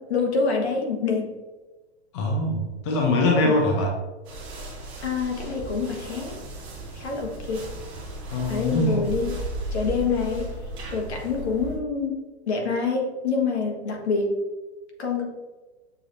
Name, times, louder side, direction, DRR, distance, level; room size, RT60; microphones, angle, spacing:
voice 1, 0.0-1.3 3.4-3.6 5.0-6.4 6.9-7.7 8.5-9.3 9.7-10.5 10.9-14.4 15.0-15.2, left 4 dB, 70° left, 0 dB, 1.5 m, -26 dB
voice 2, 2.1-3.9 8.3-9.1, left 2 dB, 25° left, -1 dB, 0.6 m, -23 dB
sound 1, 4.2-11.8, right 2 dB, 15° right, 0.7 m, -36 dB
6.9 x 3.0 x 2.6 m, 1.2 s
hypercardioid pair, 165°, 34 cm